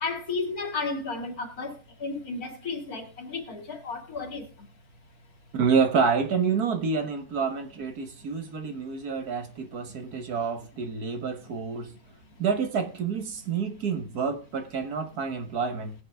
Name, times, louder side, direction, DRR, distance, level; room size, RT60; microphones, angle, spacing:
voice 1, 0.0-1.7 2.0-4.4, left 4 dB, 55° left, 2.6 m, -33 dB
voice 2, 5.5-11.9 12.4-15.9, right 5 dB, 60° right, 1.9 m, -28 dB
21.0 x 7.1 x 3.5 m
omnidirectional pair, 1.9 m